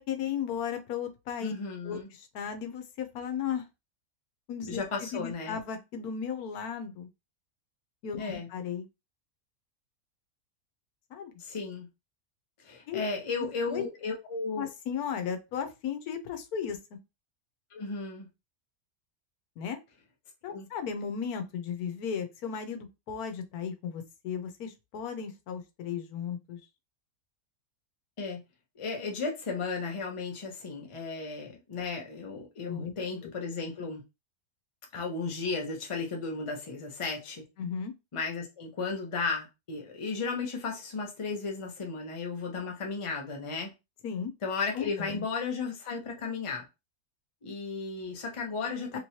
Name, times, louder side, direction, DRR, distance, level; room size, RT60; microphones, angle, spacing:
voice 1, 0.0-1.5 1.8-3.6 4.5-7.1 8.0-8.9 11.1-11.3 12.9-13.0 13.4-13.8 14.5-17.0 19.6-19.8 20.4-26.6 32.6-32.9 37.6-37.9 44.0-44.3 44.7-45.2 48.9-49.0, left 7 dB, 90° left, 1.2 m, -35 dB
voice 2, 1.4-2.1 4.7-5.6 8.2-8.5 11.4-11.9 12.6-14.7 17.7-18.3 20.5-20.7 28.2-28.4 28.8-34.0 34.9-37.4 38.1-43.7 44.4-46.7 47.4-49.0, left 4 dB, 30° left, 0.7 m, -34 dB
3.0 x 3.0 x 2.7 m
omnidirectional pair, 1.5 m